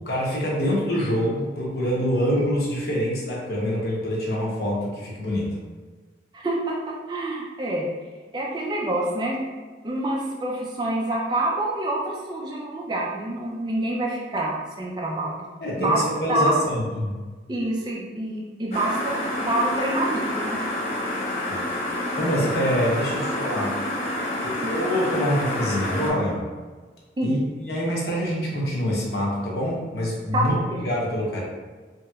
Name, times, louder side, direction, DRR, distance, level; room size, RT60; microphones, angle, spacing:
voice 1, 0.1-5.5 15.6-17.1 21.5-21.7 22.2-23.7 24.4-26.4 27.2-31.4, equal, 60° left, -4 dB, 0.8 m, -25 dB
voice 2, 6.3-7.9 8.3-9.4 9.8-15.5 15.8-16.0 16.3-16.6 17.5-20.6 24.6-24.7 27.2-27.4 30.3-30.6, right 1 dB, 25° right, -3 dB, 0.3 m, -26 dB
sound 1, 18.7-26.1, left 1 dB, 35° left, 0.5 m, -28 dB
3.1 x 2.8 x 2.3 m, 1.4 s
head